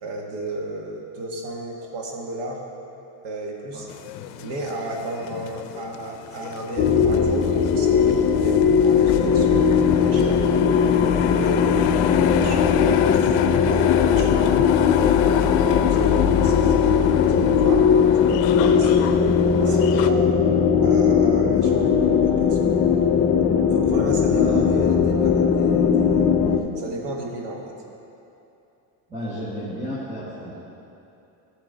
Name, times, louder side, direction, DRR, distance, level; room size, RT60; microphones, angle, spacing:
voice 1, 0.0-2.6 3.2-3.9 4.4-10.4 10.8-11.9 12.2-13.4 13.7-19.2 19.6-20.3 20.8-22.7 23.7-26.4 26.8-27.8, right 2 dB, 65° right, 1 dB, 1.6 m, -34 dB
sound 1, 3.9-20.1, left 10 dB, 80° left, 0.6 m, -30 dB
sound 2, 6.8-26.6, left 7 dB, 30° left, 0.4 m, -19 dB
voice 2, 24.2-24.7 29.1-30.5, right 1 dB, 15° right, -8 dB, 1.5 m, -32 dB
13.5 x 7.0 x 3.8 m, 2.8 s
cardioid pair, 155°, 47 cm